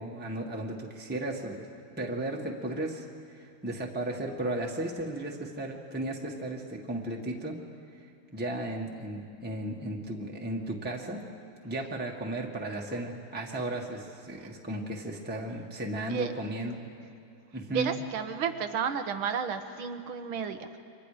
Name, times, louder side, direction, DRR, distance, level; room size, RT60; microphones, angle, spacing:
voice 1, 0.0-1.7 2.0-3.0 3.3-7.6 8.3-11.2 11.6-16.7 17.5-18.0, right 1 dB, 5° right, -1 dB, 1.4 m, -35 dB
voice 2, 17.7-20.8, right 7 dB, 70° right, 8 dB, 1.9 m, -32 dB
28.5 x 24.5 x 5.1 m, 2.5 s
omnidirectional pair, 2.4 m